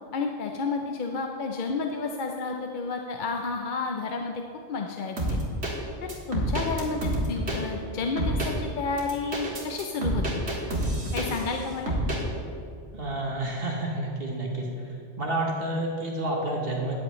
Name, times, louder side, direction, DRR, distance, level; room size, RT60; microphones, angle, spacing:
voice 1, 0.1-4.3 4.7-5.4 6.0-10.4 11.1-11.9, left 4 dB, 55° left, 3 dB, 0.7 m, -31 dB
sound 1, 5.2-5.7 6.1-7.6 8.2-8.5 9.0-11.5 11.9-12.2, right 1 dB, 75° right, 2.0 m, -28 dB
voice 2, 12.9-14.7 15.2-17.0, right 1 dB, 60° right, -1 dB, 1.5 m, -29 dB
13.5 x 9.4 x 3.1 m, 2.5 s
omnidirectional pair, 1.1 m